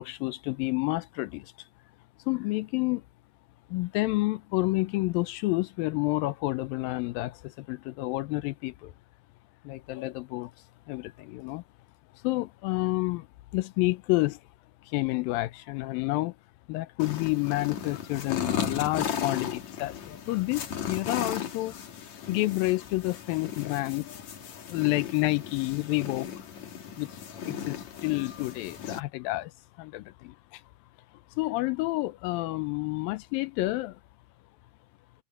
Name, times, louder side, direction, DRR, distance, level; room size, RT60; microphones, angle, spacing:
voice 1, 0.0-1.5 2.3-3.0 3.7-8.9 9.6-10.5 10.9-11.6 12.1-13.3 13.5-14.4 14.8-16.4 16.7-21.8 22.3-24.3 24.7-26.5 27.0-27.2 27.5-29.5 29.8-30.6 31.4-34.0, left 20 dB, 80° left, 2.2 m, -29 dB
sound 1, 17.0-29.0, left 8 dB, 50° left, 3.1 m, -36 dB
omnidirectional pair, 4.4 m